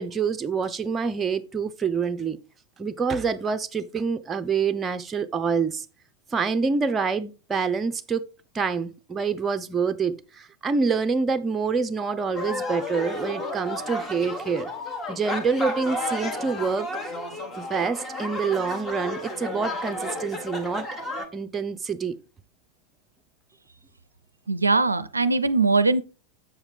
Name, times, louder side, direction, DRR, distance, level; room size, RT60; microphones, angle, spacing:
voice 1, 0.0-2.4 2.8-5.8 6.3-8.2 8.5-14.7 15.1-16.9 17.6-20.9 21.3-22.2, right 5 dB, 15° right, 0.5 m, -26 dB
sound 1, 12.3-21.3, left 1 dB, 15° left, 1.2 m, -32 dB
voice 2, 24.5-26.0, right 3 dB, 80° right, 0.4 m, -21 dB
7.4 x 7.1 x 3.3 m
figure-of-eight pair, 90°, 0 cm